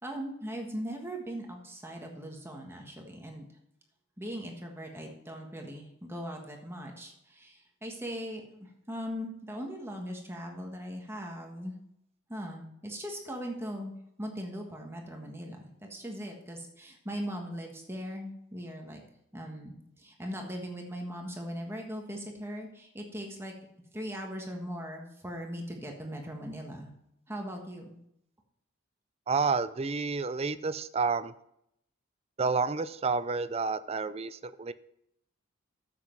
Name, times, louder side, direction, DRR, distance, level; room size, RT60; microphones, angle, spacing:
voice 1, 0.0-3.4 4.2-11.7 12.3-13.9 14.2-19.0 19.3-23.5 23.9-26.9 27.3-27.9, equal, 10° right, 1 dB, 1.5 m, -39 dB
voice 2, 29.3-31.3 32.4-34.7, right 4 dB, 30° right, 14 dB, 0.4 m, -30 dB
9.5 x 7.7 x 4.6 m, 0.76 s
head